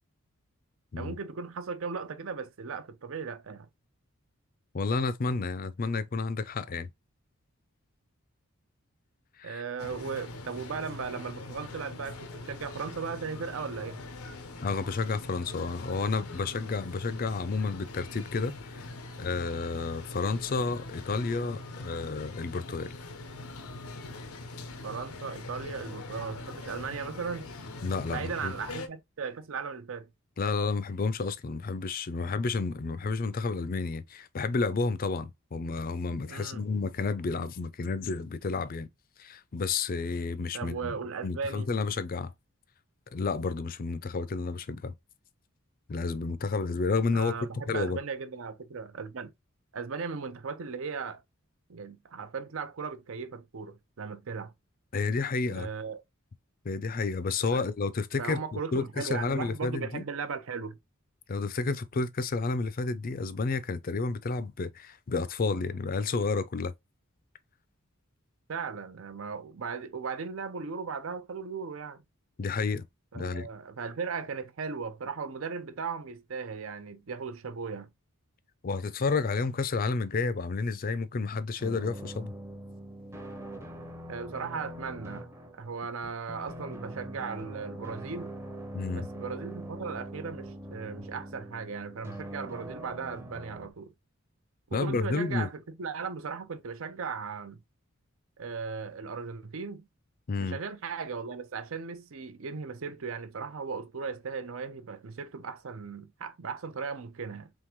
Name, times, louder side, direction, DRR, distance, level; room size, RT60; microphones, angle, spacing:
voice 1, 1.0-3.7 9.4-14.0 24.8-27.5 28.1-30.1 36.3-36.6 40.5-41.7 47.1-49.3 49.7-51.2 51.7-54.5 55.5-56.0 57.5-57.7 58.2-60.8 68.5-72.0 73.1-77.9 84.1-88.3 88.9-93.9 94.7-97.6 98.4-99.9 100.4-107.5, right 5 dB, 65° right, 0.6 m, -37 dB
voice 2, 4.7-6.9 9.4-9.6 14.6-18.9 19.2-22.9 27.8-28.5 30.4-38.9 39.2-41.0 41.2-42.3 43.1-44.9 45.9-47.3 47.7-48.0 54.9-55.7 56.6-60.0 61.3-66.7 72.4-72.8 73.1-73.5 78.6-82.3 88.7-89.1 94.7-95.5 100.3-100.6, left 4 dB, 40° left, 0.4 m, -31 dB
sound 1, 9.8-28.9, left 2 dB, 90° left, 0.7 m, -42 dB
sound 2, 81.6-93.7, right 1 dB, 10° right, 0.7 m, -43 dB
3.6 x 3.3 x 3.0 m
head